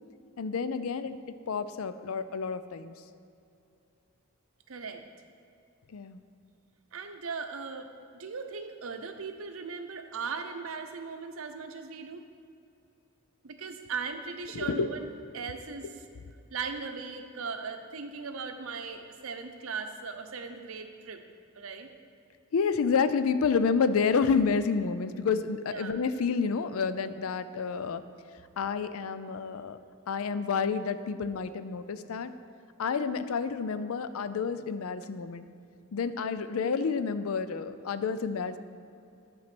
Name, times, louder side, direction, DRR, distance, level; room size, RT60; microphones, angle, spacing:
voice 1, 0.4-1.2 1.5-2.9 5.9-6.2 14.5-14.9 22.5-28.0 28.6-29.8 30.1-32.3 32.8-35.5 35.9-38.6, left 5 dB, 80° left, 12 dB, 0.4 m, -29 dB
voice 2, 4.7-5.0 6.9-7.9 8.1-12.2 13.4-15.9 16.5-21.2 21.5-21.9 25.7-26.0, right 5 dB, 70° right, 7 dB, 0.7 m, -38 dB
10.5 x 4.2 x 6.0 m, 2.6 s
head